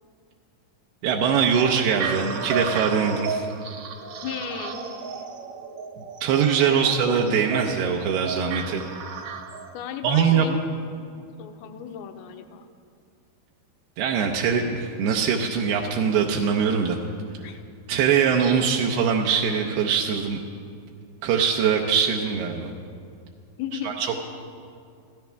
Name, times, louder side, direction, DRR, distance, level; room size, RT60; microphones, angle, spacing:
voice 1, 1.0-3.5 6.2-8.8 10.0-10.5 14.0-17.0 17.9-20.4 21.2-22.7 23.7-24.2, right 7 dB, 85° right, 0 dB, 2.9 m, -22 dB
sound 1, 1.6-9.7, right 5 dB, 60° right, 1.9 m, -33 dB
voice 2, 4.2-4.8 6.7-6.9 9.7-10.6 11.0-12.7 17.4-17.6 23.6-24.0, left 9 dB, 75° left, 6 dB, 2.5 m, -35 dB
24.0 x 15.5 x 3.4 m, 2.3 s
omnidirectional pair, 4.6 m